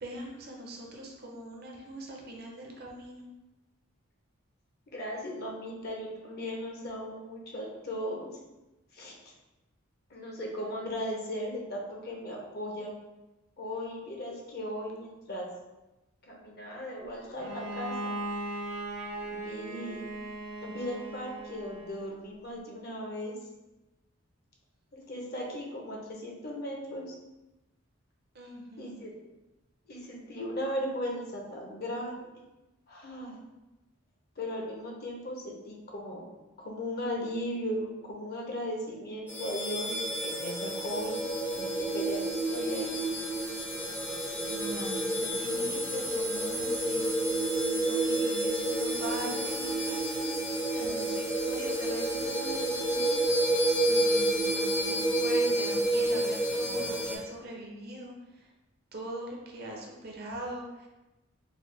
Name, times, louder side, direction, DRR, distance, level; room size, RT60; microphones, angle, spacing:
voice 1, 0.0-3.3 28.3-29.0 44.5-47.1 47.8-58.5 58.9-60.9, right 1 dB, 50° right, 0 dB, 0.6 m, -42 dB
voice 2, 4.9-8.3 8.9-9.1 10.1-13.0 13.6-15.5 16.2-18.1 19.2-20.0 20.6-23.3 24.9-27.2 28.8-29.1 29.9-32.3 32.9-33.4 34.4-36.2 36.6-39.9 40.2-41.2 41.6-43.0, equal, 50° left, -1 dB, 0.6 m, -37 dB
Bowed string instrument, 17.4-22.1, right 1 dB, 85° right, 0.7 m, -38 dB
sound 1, 39.3-57.2, right 1 dB, 10° left, 0.4 m, -29 dB
3.8 x 2.2 x 3.2 m, 1.0 s
head